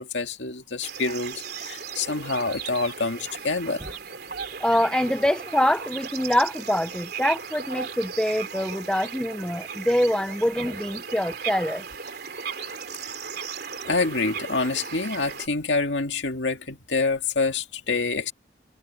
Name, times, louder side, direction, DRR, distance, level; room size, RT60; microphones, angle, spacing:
voice 1, 0.0-3.9 13.8-18.3, left 3 dB, 75° left, 2.1 m, -27 dB
sound 1, 0.8-15.5, right 6 dB, 55° right, 3.5 m, -36 dB
voice 2, 4.6-11.8, left 1 dB, 5° left, 0.6 m, -24 dB
head